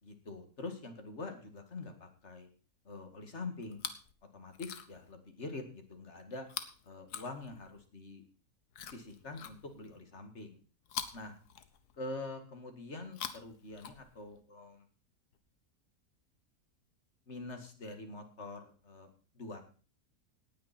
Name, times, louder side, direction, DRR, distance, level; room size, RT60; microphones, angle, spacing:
voice 1, 0.0-2.5 2.8-3.8 4.3-6.5 6.8-8.2 8.9-10.5 11.1-11.3 12.0-14.8 17.3-19.1 19.3-19.6, left 3 dB, 45° left, 6 dB, 2.3 m, -45 dB
Chewing mastication, 3.6-4.1 4.5-5.1 6.4-7.8 8.7-10.0 10.8-12.1 13.0-14.4 15.3-15.4, left 8 dB, 90° left, 1.5 m, -45 dB
18.0 x 9.5 x 4.3 m, 0.38 s
omnidirectional pair, 1.6 m